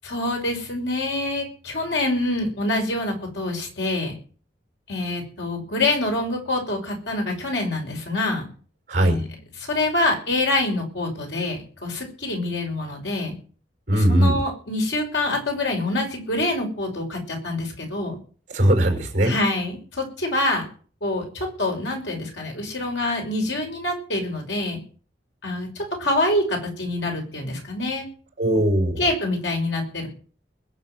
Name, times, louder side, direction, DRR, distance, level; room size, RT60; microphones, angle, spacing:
voice 1, 0.0-4.1 4.9-8.5 9.0-9.3 9.6-13.3 13.9-18.2 19.2-20.6 21.0-24.8 25.4-28.1 29.0-30.1, left 2 dB, 80° left, 2 dB, 5.9 m, -26 dB
voice 2, 13.9-14.4 18.5-19.3 28.4-29.0, right 1 dB, 45° right, 5 dB, 5.5 m, -19 dB
21.5 x 7.5 x 7.9 m, 0.42 s
head